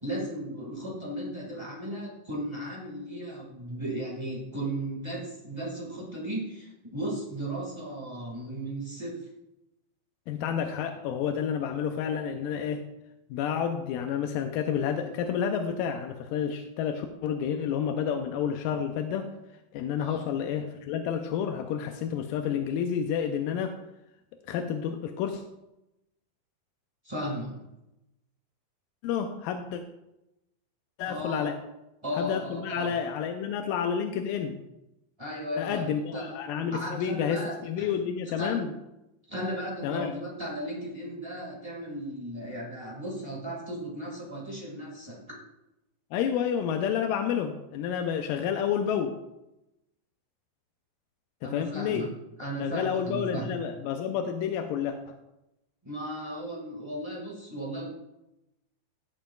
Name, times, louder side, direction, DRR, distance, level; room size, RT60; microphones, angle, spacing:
voice 1, 0.0-9.3 20.0-20.2 27.0-27.6 31.1-31.5 32.0-33.0 35.2-36.2 36.7-37.9 38.4-38.6 39.3-45.2 51.4-52.1 52.4-53.5 55.8-57.9, right 1 dB, 35° right, -3 dB, 0.4 m, -35 dB
voice 2, 10.3-12.8 13.3-19.3 19.7-23.8 24.5-25.4 29.0-29.8 31.0-31.6 32.1-34.6 35.6-38.7 39.8-40.2 46.1-49.1 51.4-52.1 52.6-55.2, left 8 dB, 80° left, 5 dB, 2.0 m, -30 dB
17.5 x 7.2 x 2.4 m, 0.90 s
omnidirectional pair, 4.5 m